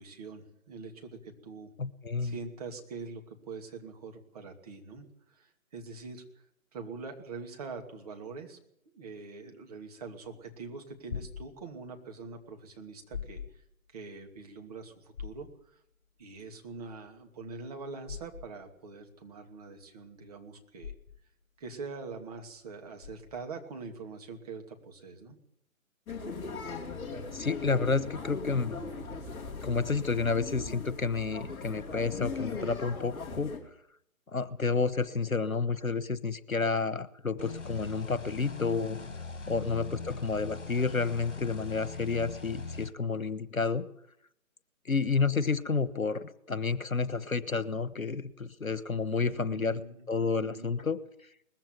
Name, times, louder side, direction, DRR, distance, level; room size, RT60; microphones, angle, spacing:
voice 1, 0.0-1.7 2.2-6.2 6.7-8.6 8.9-13.6 13.9-15.8 16.2-20.9 21.6-25.4 39.6-40.0 49.2-50.1 50.4-50.7, right 4 dB, 25° right, 3 dB, 2.7 m, -44 dB
voice 2, 1.8-2.3 27.3-28.8 29.6-33.5 34.3-39.0 39.5-43.9 44.8-49.8 50.1-51.0, left 4 dB, 80° left, 16 dB, 1.4 m, -30 dB
sound 1, 10.8-23.6, left 7 dB, 25° left, 4.5 m, -45 dB
sound 2, 26.1-33.6, left 4 dB, 10° left, 2.9 m, -39 dB
sound 3, 37.4-42.9, left 4 dB, 60° left, 2.2 m, -41 dB
20.5 x 15.0 x 9.2 m, 0.73 s
figure-of-eight pair, 145°, 41 cm